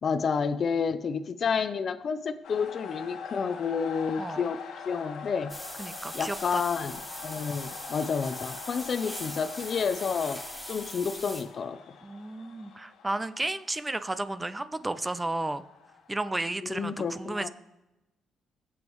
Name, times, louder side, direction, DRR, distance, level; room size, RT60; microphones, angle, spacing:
voice 1, 0.0-5.5 6.1-7.0 7.2-10.4 10.7-11.8 16.6-17.5, left 6 dB, 50° left, 10 dB, 0.6 m, -30 dB
sound 1, 2.4-16.2, left 6 dB, 85° left, 1.5 m, -44 dB
voice 2, 4.2-4.5 5.8-6.6 12.0-15.6 16.1-17.5, right 2 dB, 15° right, 12 dB, 0.6 m, -33 dB
sound 2, 5.5-11.4, equal, 5° left, 3.5 m, -41 dB
20.5 x 7.5 x 3.1 m, 1.0 s
cardioid pair, 90°, 0 cm